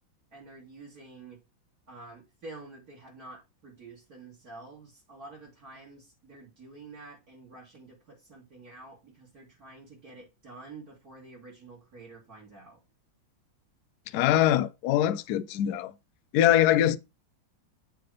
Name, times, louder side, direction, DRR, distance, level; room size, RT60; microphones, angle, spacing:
voice 1, 0.3-1.4 1.9-12.8, right 3 dB, 45° right, 2.8 m, -48 dB
voice 2, 14.1-15.9 16.3-17.0, left 12 dB, 75° left, 0.9 m, -23 dB
7.7 x 3.5 x 5.0 m
omnidirectional pair, 2.2 m